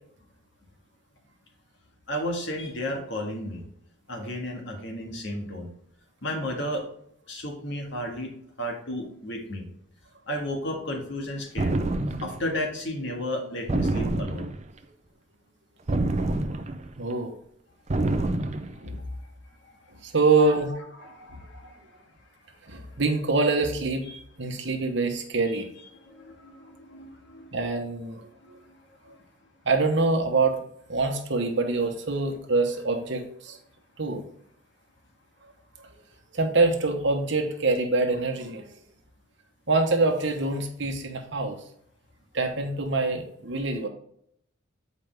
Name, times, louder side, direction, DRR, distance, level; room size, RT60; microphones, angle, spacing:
voice 1, 2.1-3.6 4.1-5.7 6.2-6.8 7.3-8.3 8.6-9.7 10.3-11.7 12.2-14.5 19.6-19.7 20.3-20.6 21.0-22.0 24.0-24.2 25.5-25.6 26.0-27.5 29.1-29.2, left 1 dB, 60° left, 1 dB, 1.8 m, -33 dB
sound 1, 11.6-12.4 13.7-14.7 15.9-16.9 17.9-18.8, right 2 dB, 35° right, 0.5 m, -27 dB
voice 2, 17.0-17.3 18.8-19.0 20.0-20.7 22.7-24.1 24.4-25.6 27.5-28.3 29.7-30.6 30.9-33.6 34.0-34.2 36.3-38.6 39.7-41.6 42.3-43.9, right 3 dB, 60° right, 4 dB, 1.2 m, -25 dB
8.2 x 5.1 x 3.4 m, 0.69 s
head